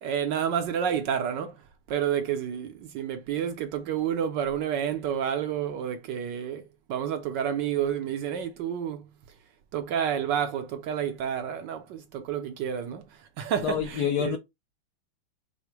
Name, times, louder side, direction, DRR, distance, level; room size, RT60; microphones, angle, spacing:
voice 1, 0.0-1.6 1.9-6.6 6.9-9.0 9.7-13.0 13.4-14.4, right 8 dB, 70° right, 1.2 m, -29 dB
voice 2, 13.6-14.4, left 8 dB, 70° left, 1.0 m, -27 dB
4.9 x 2.1 x 4.5 m
omnidirectional pair, 2.2 m